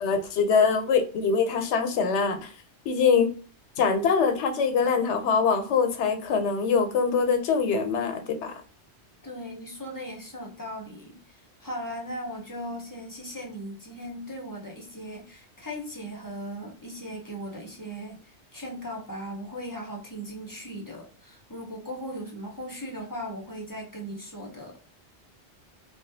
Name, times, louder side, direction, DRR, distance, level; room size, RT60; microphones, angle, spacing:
voice 1, 0.0-2.5 2.9-3.3 3.8-8.5, left 5 dB, 85° left, 7 dB, 0.9 m, -23 dB
voice 2, 9.2-24.8, equal, 25° left, -1 dB, 0.6 m, -38 dB
2.3 x 2.2 x 2.6 m, 0.38 s
omnidirectional pair, 1.1 m